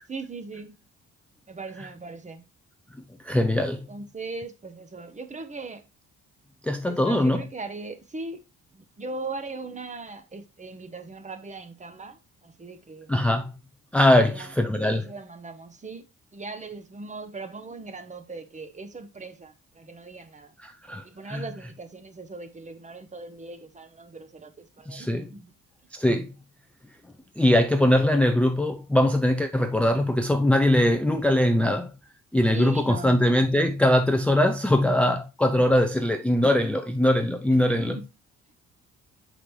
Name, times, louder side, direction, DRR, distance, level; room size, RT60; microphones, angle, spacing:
voice 1, 0.1-0.8 1.5-2.4 3.9-5.8 6.8-8.4 8.7-13.1 14.2-16.1 16.3-20.5 21.0-25.5 32.5-33.2 37.5-38.0, right 3 dB, 25° right, 0.9 m, -39 dB
voice 2, 3.2-3.9 6.6-7.4 13.1-13.6 13.9-15.0 20.6-21.4 24.9-25.3 25.9-26.3 27.4-31.9 32.3-38.0, left 1 dB, 5° left, 0.4 m, -22 dB
6.0 x 5.1 x 3.2 m
cardioid pair, 90°, 30 cm